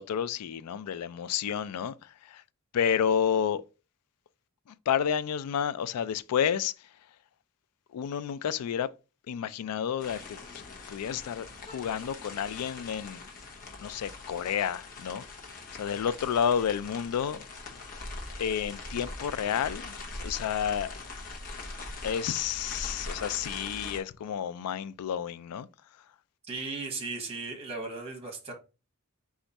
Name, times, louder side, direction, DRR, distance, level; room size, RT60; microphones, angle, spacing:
voice 1, 0.0-1.9 2.2-2.4 2.7-3.6 4.9-6.7 7.9-8.9 9.3-10.4 10.9-13.2 13.8-15.2 15.8-17.4 18.4-19.9 20.2-20.9 22.0-25.7, left 8 dB, 90° left, 0.3 m, -30 dB
sound 1, 10.0-24.0, left 3 dB, 40° left, 0.9 m, -42 dB
voice 2, 26.4-28.5, right 3 dB, 25° right, 1.1 m, -36 dB
4.3 x 2.4 x 4.0 m
head